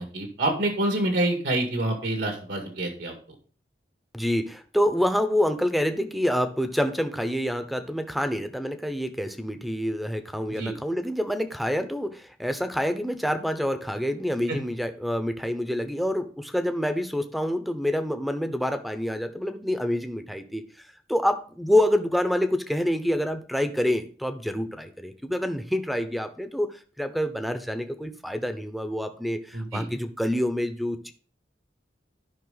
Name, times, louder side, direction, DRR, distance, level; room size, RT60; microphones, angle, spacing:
voice 1, 0.0-3.1 10.6-10.7 14.5-14.6 29.5-29.9, right 1 dB, 80° right, 3 dB, 2.1 m, -27 dB
voice 2, 4.1-20.6 21.1-31.1, equal, ahead, 9 dB, 0.8 m, -27 dB
12.5 x 5.6 x 4.0 m, 0.40 s
head